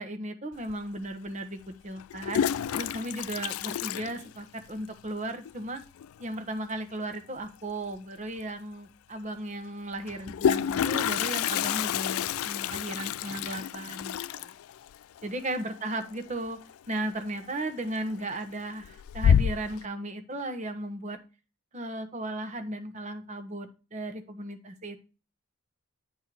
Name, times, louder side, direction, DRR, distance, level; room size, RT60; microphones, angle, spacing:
voice 1, 0.0-1.6 1.8-5.8 6.2-14.5 15.2-16.6 16.9-21.2 21.7-25.0, right 1 dB, 30° right, 7 dB, 1.1 m, -36 dB
Toilet flush, 0.7-0.8 2.0-4.8 5.1-5.2 5.5-5.6 5.8-6.2 7.9-8.0 8.4-8.5 10.0-16.7 17.0-17.5 17.9-18.4 18.8-19.8, left 8 dB, 75° left, 0.3 m, -29 dB
9.3 x 4.5 x 4.6 m, 0.31 s
head